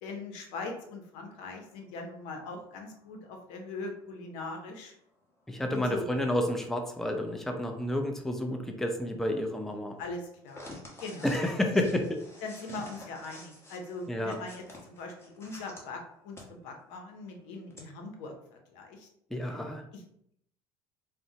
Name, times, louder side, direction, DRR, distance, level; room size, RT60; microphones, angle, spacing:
voice 1, 0.0-4.9 5.7-6.1 10.0-10.6 11.0-11.3 12.4-19.1 19.9-20.0, left 3 dB, 80° left, 3 dB, 0.7 m, -41 dB
sound 1, 1.7-4.5 5.0-15.8 16.3-16.4 16.8-16.9 17.3-17.8, left 1 dB, 20° left, 1.1 m, -51 dB
voice 2, 5.5-10.0 11.2-12.2 14.1-14.4 19.3-19.8, left 1 dB, 5° left, 4 dB, 0.4 m, -30 dB
3.7 x 2.1 x 2.7 m, 0.70 s
supercardioid pair, 95°, 13 cm